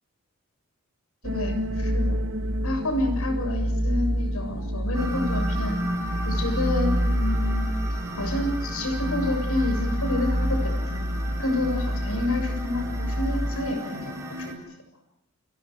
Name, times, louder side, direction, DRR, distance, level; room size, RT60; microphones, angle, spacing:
voice 1, 1.2-2.2 2.6-5.8 6.3-7.7 8.2-11.1 11.4-14.6, left 2 dB, 80° left, 7 dB, 7.2 m, -29 dB
sound 1, 1.2-13.7, equal, 60° right, 1.8 m, -27 dB
sound 2, 4.9-14.5, right 1 dB, 15° right, 6.2 m, -34 dB
30.0 x 29.0 x 4.9 m, 0.84 s
head